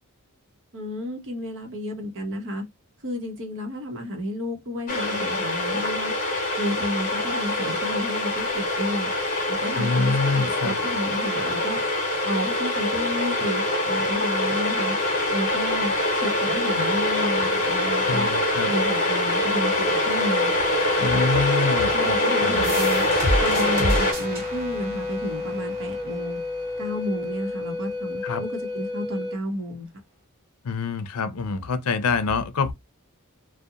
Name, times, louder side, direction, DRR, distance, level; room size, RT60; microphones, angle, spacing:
voice 1, 0.7-2.6 3.0-6.1 6.6-9.1 9.5-11.8 12.2-14.9 15.3-18.3 18.7-20.5 21.9-23.0 23.4-26.4 26.8-29.9, equal, 60° right, 0.8 m, -31 dB
sound 1, 4.9-24.1, left 1 dB, 40° left, 0.8 m, -24 dB
voice 2, 9.8-10.8 18.1-18.7 21.0-22.7 28.2-28.4 30.6-32.7, left 4 dB, 75° left, 0.5 m, -26 dB
Wind instrument woodwind instrument, 20.1-29.4, left 3 dB, 20° right, 0.4 m, -31 dB
sound 2, 22.6-28.0, equal, 40° right, 1.1 m, -30 dB
2.7 x 2.1 x 2.3 m
head